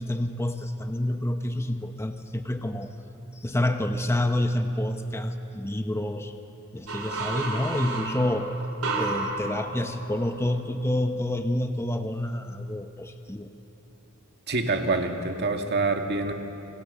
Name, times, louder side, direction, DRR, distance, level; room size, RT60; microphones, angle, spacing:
voice 1, 0.0-2.9 3.3-6.3 6.7-8.5 9.0-13.5, left 1 dB, 10° left, 6 dB, 0.9 m, -28 dB
sound 1, 6.9-10.5, right 3 dB, 70° right, 4.5 m, -32 dB
voice 2, 14.5-16.3, right 3 dB, 50° right, 4 dB, 1.9 m, -26 dB
27.5 x 24.0 x 6.7 m, 2.9 s
head